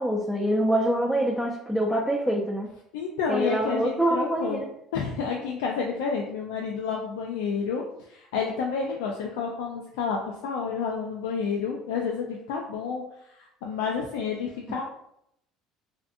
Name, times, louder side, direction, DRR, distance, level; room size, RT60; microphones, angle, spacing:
voice 1, 0.0-2.7 3.3-4.7, right 1 dB, 5° right, -4 dB, 0.4 m, -25 dB
voice 2, 2.9-13.0 13.3-14.8, left 5 dB, 90° left, -1 dB, 0.3 m, -30 dB
2.6 x 2.5 x 2.4 m, 0.76 s
supercardioid pair, 95°, 0 cm